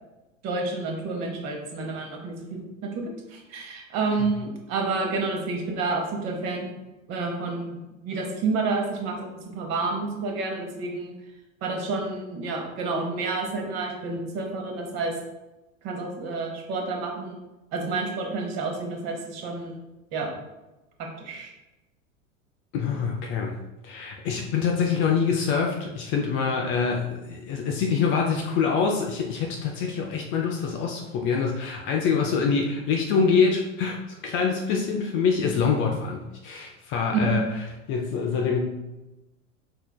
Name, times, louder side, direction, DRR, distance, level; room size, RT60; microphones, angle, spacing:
voice 1, 0.4-6.7 7.1-7.8 8.0-11.1 11.6-15.1 15.8-17.4 17.7-19.8 20.1-20.3 21.0-21.5 37.1-37.4, right 3 dB, 40° right, 1 dB, 1.0 m, -29 dB
voice 2, 22.7-23.5 23.8-34.0 34.2-37.4 37.9-38.6, left 5 dB, 30° left, 1 dB, 0.4 m, -25 dB
4.5 x 3.3 x 2.2 m, 1.0 s
figure-of-eight pair, 90°, 41 cm